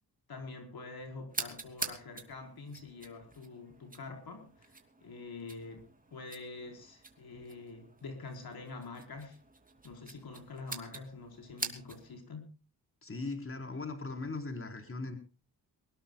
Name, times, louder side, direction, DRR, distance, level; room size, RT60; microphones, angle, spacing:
voice 1, 0.3-9.4 9.8-12.5, left 3 dB, 65° left, 5 dB, 4.5 m, -46 dB
sound 1, 1.3-12.2, right 3 dB, 20° right, 3.0 m, -45 dB
voice 2, 13.0-15.2, left 3 dB, 30° left, 5 dB, 4.4 m, -39 dB
23.0 x 19.5 x 2.3 m, 0.33 s
cardioid pair, 90°, 40 cm